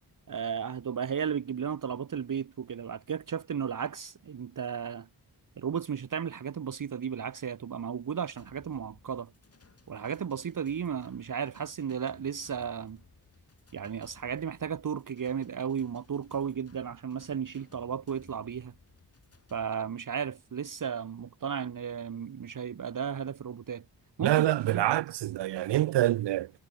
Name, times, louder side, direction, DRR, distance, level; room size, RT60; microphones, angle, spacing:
voice 1, 0.3-5.1 5.6-9.3 9.9-13.0 13.7-18.7 19.5-23.8 24.2-24.9, right 7 dB, 50° right, 1.2 m, -34 dB
sound 1, 8.4-19.7, left 4 dB, 35° left, 7.7 m, -60 dB
voice 2, 24.2-26.5, right 14 dB, 80° right, 0.5 m, -26 dB
wide cardioid pair, 155°, 41 cm